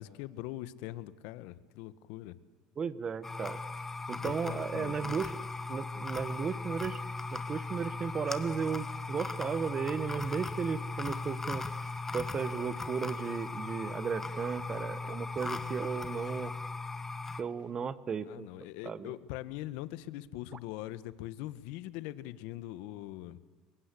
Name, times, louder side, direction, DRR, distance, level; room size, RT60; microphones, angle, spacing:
voice 1, 0.0-2.3 4.2-5.2 18.3-23.4, left 15 dB, 75° left, 15 dB, 1.4 m, -42 dB
voice 2, 2.8-3.6 4.1-5.4 5.7-7.0 7.3-11.7 12.1-16.5 17.4-18.5 18.8-19.1 20.5-20.6, right 6 dB, 30° right, 15 dB, 1.3 m, -35 dB
sound 1, 3.2-17.4, left 3 dB, 15° left, 1.4 m, -38 dB
30.0 x 23.0 x 8.5 m, 1.3 s
cardioid pair, 130°, 3 cm